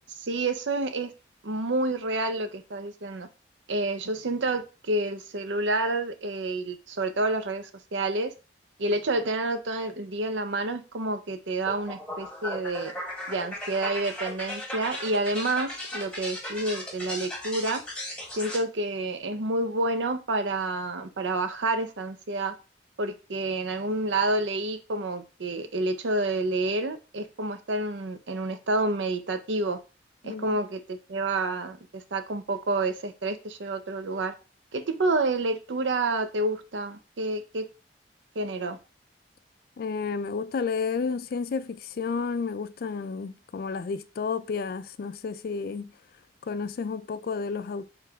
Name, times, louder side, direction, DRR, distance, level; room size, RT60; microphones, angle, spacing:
voice 1, 0.1-1.1 1.4-3.3 3.7-8.3 8.8-12.9 13.3-17.8 18.3-22.5 23.0-29.8 30.2-34.3 34.7-37.7 38.3-38.8, right 2 dB, 90° right, 0.7 m, -29 dB
sound 1, 11.7-18.6, left 1 dB, 5° left, 1.3 m, -36 dB
voice 2, 39.8-45.9 46.5-47.8, left 5 dB, 55° left, 0.4 m, -31 dB
4.8 x 3.2 x 3.4 m
head